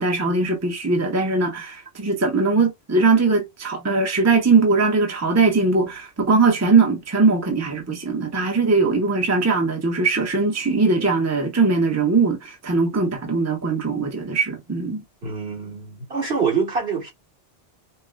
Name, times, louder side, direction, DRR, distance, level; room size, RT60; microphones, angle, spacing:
voice 1, 0.0-15.0, right 4 dB, 15° right, 0.8 m, -20 dB
voice 2, 15.2-17.1, right 5 dB, 65° right, 2.6 m, -25 dB
5.6 x 2.2 x 2.2 m
omnidirectional pair, 1.1 m